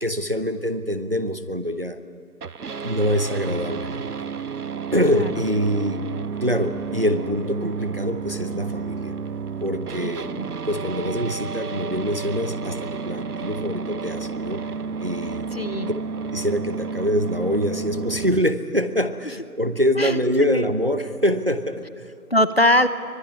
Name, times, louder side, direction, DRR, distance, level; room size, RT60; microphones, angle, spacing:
voice 1, 0.0-2.0 2.8-4.1 4.9-6.0 6.4-9.1 9.6-10.3 10.6-14.6 15.0-15.5 16.3-22.2, equal, 40° right, 10 dB, 1.0 m, -24 dB
sound 1, 2.4-18.4, right 5 dB, 75° right, 0.8 m, -31 dB
voice 2, 10.0-10.5 15.5-15.9 20.0-20.7 22.3-22.9, left 1 dB, 40° left, 13 dB, 0.9 m, -22 dB
24.0 x 20.0 x 9.6 m, 2.2 s
figure-of-eight pair, 180°, 45 cm